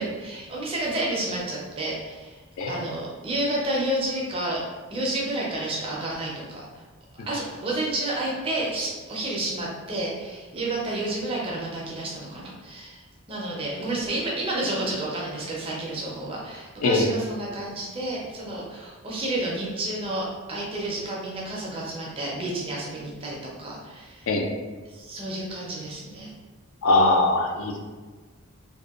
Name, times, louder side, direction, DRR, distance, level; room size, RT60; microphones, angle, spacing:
voice 1, 0.0-2.4 2.7-4.6 4.9-6.7 7.1-13.0 13.3-24.3 24.9-26.3, right 1 dB, 25° right, -4 dB, 0.4 m, -30 dB
voice 2, 26.8-27.8, left 2 dB, 70° left, 2 dB, 0.4 m, -21 dB
2.6 x 2.1 x 2.3 m, 1.4 s
head